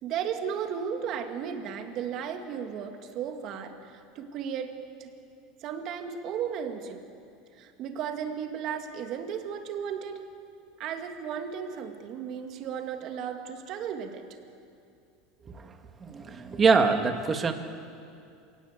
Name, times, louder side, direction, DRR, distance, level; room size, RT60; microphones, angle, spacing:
voice 1, 0.0-5.1 5.6-7.0 7.5-10.2 10.8-14.2, right 7 dB, 45° right, 5 dB, 2.5 m, -35 dB
voice 2, 16.0-17.5, right 5 dB, 20° right, 6 dB, 1.8 m, -24 dB
28.0 x 18.0 x 8.4 m, 2.5 s
supercardioid pair, 140°, 0 cm